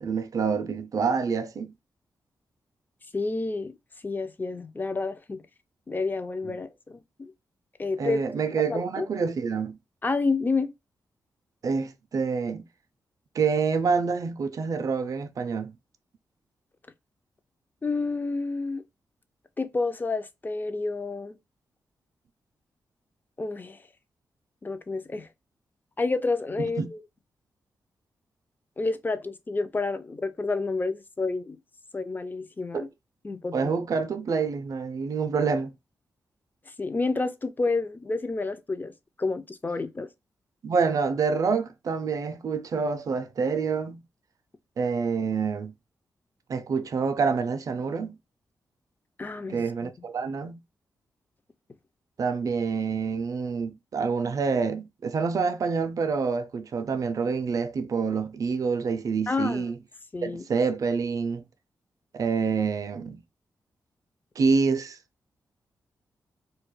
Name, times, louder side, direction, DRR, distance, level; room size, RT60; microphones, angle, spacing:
voice 1, 0.0-1.7 6.5-6.6 8.0-9.8 11.6-12.6 13.3-15.8 26.6-26.9 32.7-32.9 33.5-35.7 40.6-44.0 44.8-45.7 46.5-48.2 49.5-50.6 52.2-59.7 60.2-61.4 62.1-63.2 64.4-65.0, right 5 dB, 55° right, 0.4 m, -27 dB
voice 2, 3.1-3.7 4.0-5.4 5.9-7.3 7.8-8.2 8.7-9.1 10.0-10.7 17.8-18.8 19.6-21.4 23.4-23.8 24.6-25.3 26.0-27.0 28.8-31.6 31.9-32.9 33.2-33.7 36.8-38.9 39.2-40.1 49.2-49.9 59.3-59.7 60.1-60.4, left 3 dB, 25° left, 0.4 m, -29 dB
2.2 x 2.1 x 3.0 m
cardioid pair, 55°, 7 cm